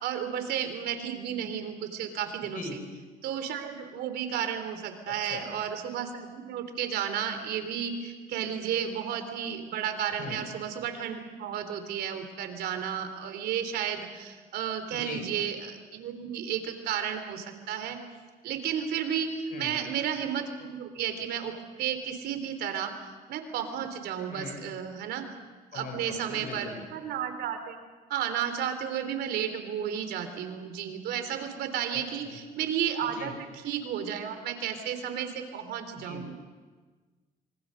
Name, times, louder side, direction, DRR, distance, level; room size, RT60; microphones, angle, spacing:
voice 1, 0.0-2.8 3.2-18.0 18.4-21.5 21.8-22.9 23.3-25.2 25.7-27.8 28.1-33.3 33.6-36.3, right 8 dB, 75° right, 7 dB, 3.5 m, -32 dB
voice 2, 10.1-10.4 14.9-15.2 19.5-19.8 24.3-24.6 25.7-26.9 31.9-32.4 33.0-33.3 35.9-36.3, left 4 dB, 55° left, 4 dB, 6.7 m, -41 dB
26.5 x 24.0 x 6.6 m, 1.4 s
cardioid pair, 110°, 17 cm